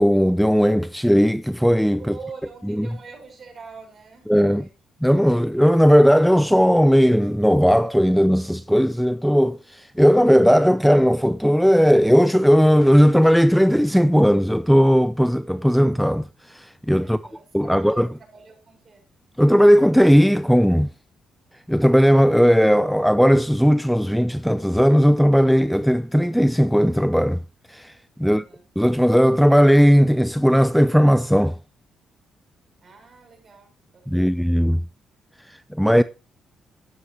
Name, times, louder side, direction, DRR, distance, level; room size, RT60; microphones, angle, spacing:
voice 1, 0.0-2.1 2.7-2.9 4.3-4.7 5.0-17.2 17.5-18.1 19.4-20.9 21.7-27.4 27.7-27.9 28.2-28.4 28.8-31.6 34.1-34.8 35.5-36.0, equal, ahead, 0.5 m, -17 dB
voice 2, 2.0-4.7 17.0-19.0 28.2-28.7 32.8-34.4, right 5 dB, 40° right, 6.7 m, -44 dB
12.5 x 10.0 x 2.9 m
cardioid pair, 90°, 0 cm